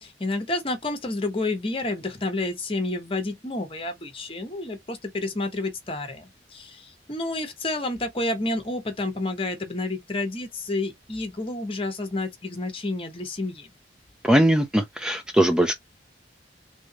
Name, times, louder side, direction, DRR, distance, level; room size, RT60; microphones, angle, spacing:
voice 1, 0.0-13.7, left 2 dB, 30° left, 1.2 m, -30 dB
voice 2, 14.2-15.7, right 1 dB, 5° right, 0.4 m, -20 dB
3.7 x 3.4 x 2.9 m
head